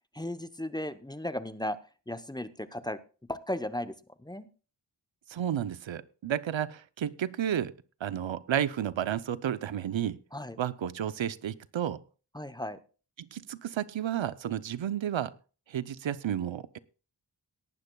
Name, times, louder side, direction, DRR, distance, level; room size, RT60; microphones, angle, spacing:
voice 1, 0.1-1.8 2.1-3.0 3.3-3.9 4.2-4.5 10.3-10.6 12.3-12.8, left 1 dB, 10° left, 11 dB, 0.8 m, -35 dB
voice 2, 5.3-7.7 8.0-10.2 10.6-12.0 13.2-15.3 15.7-16.8, right 10 dB, 90° right, 15 dB, 0.7 m, -32 dB
18.0 x 12.0 x 2.3 m, 0.35 s
wide cardioid pair, 65°, 44 cm